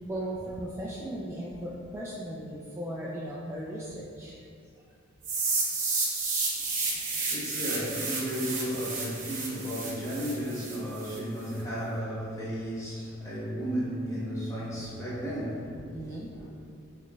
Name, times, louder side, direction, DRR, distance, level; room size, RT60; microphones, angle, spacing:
voice 1, 0.0-4.3 15.9-16.3, right 1 dB, 10° right, -7 dB, 0.3 m, -37 dB
sound 1, 5.2-11.2, right 3 dB, 40° right, 0.9 m, -31 dB
voice 2, 6.5-16.0 16.3-16.5, equal, 15° left, -8 dB, 0.9 m, -34 dB
6.2 x 3.1 x 2.2 m, 2.4 s
head